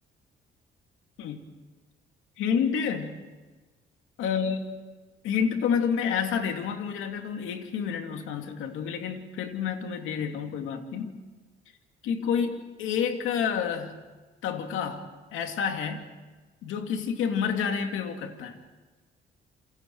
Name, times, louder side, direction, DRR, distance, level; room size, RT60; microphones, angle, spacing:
voice 1, 2.4-3.2 4.2-4.7 5.2-11.2 12.0-14.0 14.4-15.1 15.3-16.1 16.6-18.6, left 7 dB, 90° left, 5 dB, 2.5 m, -29 dB
28.5 x 28.0 x 4.7 m, 1.3 s
cardioid pair, 90°, 20 cm